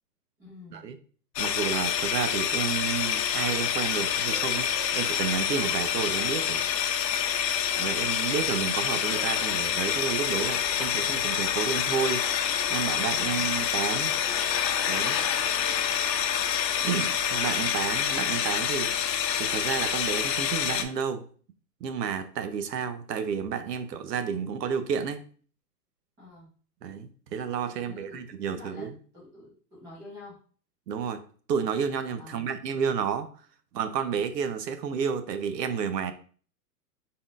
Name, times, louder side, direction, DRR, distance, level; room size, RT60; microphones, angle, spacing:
voice 1, 0.4-0.9 26.2-26.5 27.7-30.4 32.2-32.5, left 2 dB, 5° right, -7 dB, 0.7 m, -48 dB
sound 1, 1.4-20.8, left 9 dB, 90° left, 0.7 m, -27 dB
voice 2, 1.4-6.6 7.8-12.2 12.7-14.1 14.9-15.2 16.7-18.9 19.4-21.2 21.8-25.2 26.8-29.0 30.9-31.2 31.5-33.3 33.7-36.1, right 7 dB, 85° right, 10 dB, 0.8 m, -31 dB
Wind instrument woodwind instrument, 4.2-6.4 6.6-6.9 7.2-9.8 10.1-10.8, equal, 20° left, 1.1 m, -50 dB
3.8 x 3.8 x 2.5 m, 0.43 s
hypercardioid pair, 175°, 48 cm